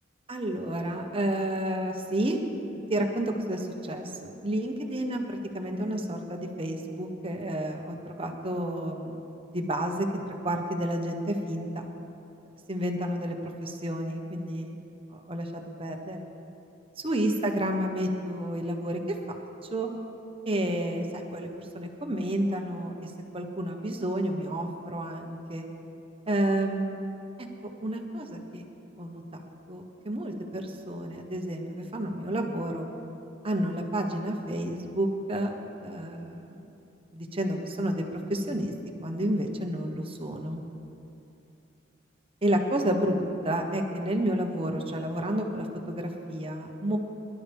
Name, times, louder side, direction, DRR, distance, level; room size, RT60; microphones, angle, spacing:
voice 1, 0.3-2.4 2.9-9.2 9.5-10.1 10.4-11.8 12.7-14.8 15.1-16.2 17.0-19.4 19.7-19.9 20.5-25.6 26.3-27.0 27.6-28.6 29.0-29.2 29.7-32.9 33.4-35.5 35.8-36.6 37.1-38.7 39.0-40.6 42.4-47.0, right 1 dB, 30° right, 3 dB, 1.2 m, -30 dB
22.0 x 12.0 x 3.6 m, 2.8 s
head